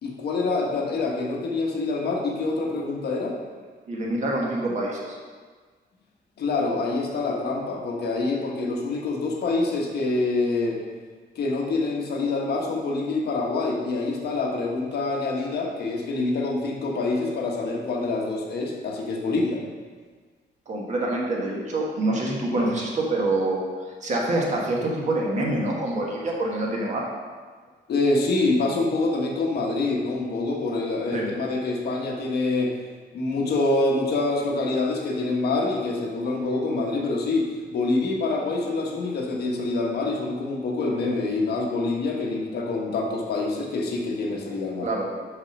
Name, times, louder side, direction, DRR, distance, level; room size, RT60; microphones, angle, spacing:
voice 1, 0.0-3.3 6.4-10.8 11.3-19.6 27.9-32.7 33.1-44.9, left 3 dB, 60° left, -1 dB, 1.4 m, -26 dB
voice 2, 3.9-5.2 20.7-23.6 24.0-27.1 31.1-31.3 44.8-45.1, right 2 dB, 40° right, -2 dB, 1.5 m, -26 dB
6.7 x 5.9 x 5.4 m, 1.5 s
cardioid pair, 175°, 18 cm